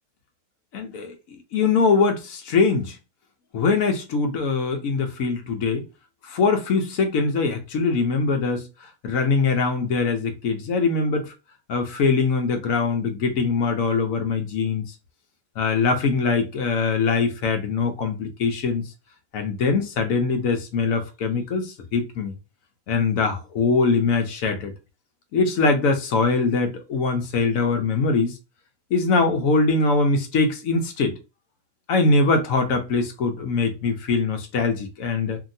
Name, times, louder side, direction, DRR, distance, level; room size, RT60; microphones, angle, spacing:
voice 1, 0.7-1.1 1.5-3.0 3.5-5.8 6.3-8.7 9.0-11.3 11.7-14.9 15.6-18.8 19.3-22.3 22.9-24.7 25.3-28.3 28.9-31.2 31.9-35.4, left 4 dB, 75° left, 1.1 m, -22 dB
2.8 x 2.8 x 2.6 m
omnidirectional pair, 1.5 m